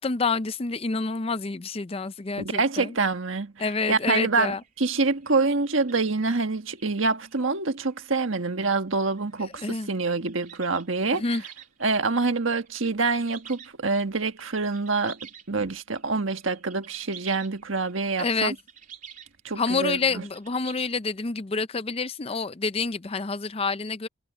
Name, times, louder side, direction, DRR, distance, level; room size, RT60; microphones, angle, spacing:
voice 1, 0.0-3.0 3.6-4.6 9.5-9.9 11.1-11.4 18.2-18.6 19.6-24.1, left 4 dB, 30° left, 0.5 m, -28 dB
voice 2, 2.4-11.2 11.8-15.2 15.5-18.5 19.4-20.2, right 3 dB, 75° right, 1.5 m, -26 dB
sound 1, 3.6-3.7 4.0-4.2 4.6-7.5 7.7-8.0 8.5-8.6 9.0-20.9, right 8 dB, 40° right, 3.6 m, -49 dB
head